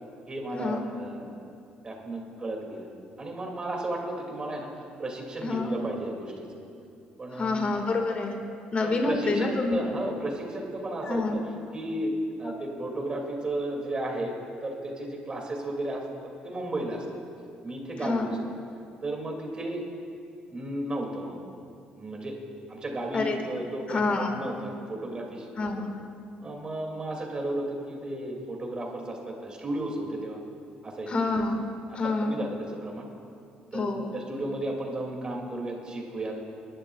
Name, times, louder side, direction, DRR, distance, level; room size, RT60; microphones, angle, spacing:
voice 1, 0.3-1.3 1.8-2.9 3.2-4.7 5.0-6.5 7.2-7.6 8.8-12.1 12.4-14.3 14.6-16.0 16.4-17.1 17.6-18.6 19.0-19.8 20.5-21.4 22.0-22.3 22.7-25.7 26.4-30.4 30.8-31.1 31.9-33.1 33.7-36.4, right 1 dB, 30° right, 0 dB, 2.4 m, -34 dB
voice 2, 5.4-5.7 7.3-8.4 8.7-9.8 11.0-11.4 12.4-12.6 18.0-18.3 23.1-23.4 23.9-24.3 25.6-25.9 31.1-31.6 32.0-32.4 33.7-34.1, left 3 dB, 40° left, 3 dB, 1.8 m, -27 dB
23.0 x 11.5 x 2.4 m, 2.5 s
supercardioid pair, 85°, 3 cm